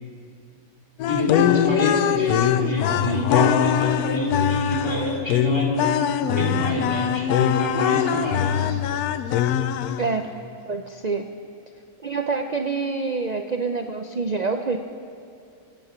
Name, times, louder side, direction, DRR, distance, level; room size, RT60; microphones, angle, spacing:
sound 1, 1.0-10.2, left 9 dB, 85° left, 1.1 m, -22 dB
voice 1, 1.1-5.8 6.2-8.8, left 1 dB, 15° left, -4 dB, 2.8 m, -27 dB
voice 2, 10.7-11.3 12.0-14.8, right 4 dB, 60° right, 6 dB, 0.4 m, -26 dB
22.5 x 9.0 x 5.7 m, 2.4 s
omnidirectional pair, 1.6 m